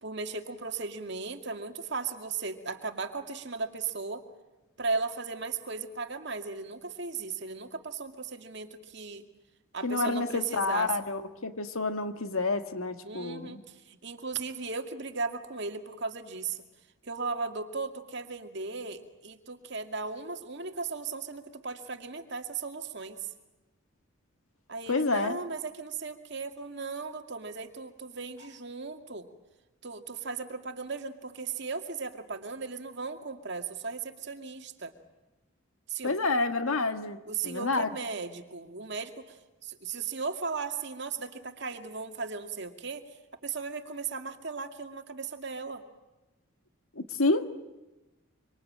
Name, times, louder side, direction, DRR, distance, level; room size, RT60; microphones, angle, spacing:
voice 1, 0.0-4.2 4.8-9.3 9.7-11.0 13.0-16.6 17.0-23.3 24.7-29.3 29.8-34.9 35.9-36.1 37.3-39.4 39.6-43.0 43.4-45.8, right 4 dB, 55° right, 6 dB, 2.3 m, -36 dB
voice 2, 9.8-13.6 24.9-25.4 36.0-37.2 37.4-37.9 47.0-47.5, left 3 dB, 80° left, 8 dB, 1.8 m, -29 dB
26.0 x 25.5 x 8.8 m, 1.1 s
head